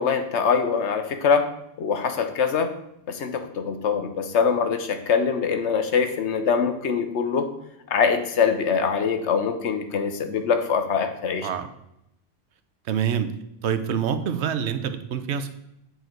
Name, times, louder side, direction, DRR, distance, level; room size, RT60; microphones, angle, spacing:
voice 1, 0.0-1.5 1.8-2.7 3.1-7.5 7.9-11.5, left 6 dB, 90° left, 7 dB, 1.2 m, -23 dB
voice 2, 12.9-13.3 13.6-15.5, right 8 dB, 80° right, 10 dB, 0.9 m, -26 dB
8.1 x 4.6 x 4.5 m, 0.80 s
omnidirectional pair, 1.1 m